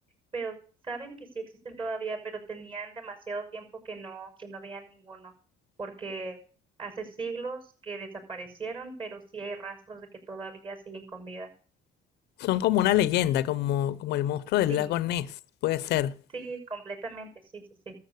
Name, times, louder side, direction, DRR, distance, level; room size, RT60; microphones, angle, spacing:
voice 1, 0.8-5.3 5.8-6.4 6.8-11.5 14.7-14.9 16.3-17.9, right 4 dB, 30° right, 5.8 m, -38 dB
voice 2, 12.4-16.1, left 13 dB, 80° left, 0.7 m, -26 dB
13.5 x 7.2 x 8.3 m
cardioid pair, 110°, 17 cm